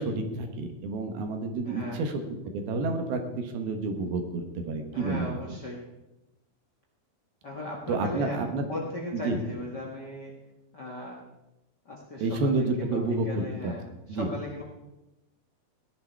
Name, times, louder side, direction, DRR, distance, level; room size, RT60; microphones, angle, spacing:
voice 1, 0.0-2.2 2.5-5.3 7.9-8.7 9.1-9.4 12.2-13.7 14.1-14.3, right 3 dB, 80° right, 5 dB, 3.2 m, -29 dB
voice 2, 1.6-2.0 4.9-5.8 7.4-8.4 8.7-10.3 10.7-11.3 11.8-13.8 14.1-14.6, left 2 dB, 45° left, -1 dB, 1.4 m, -37 dB
16.0 x 10.5 x 4.6 m, 0.95 s
omnidirectional pair, 4.3 m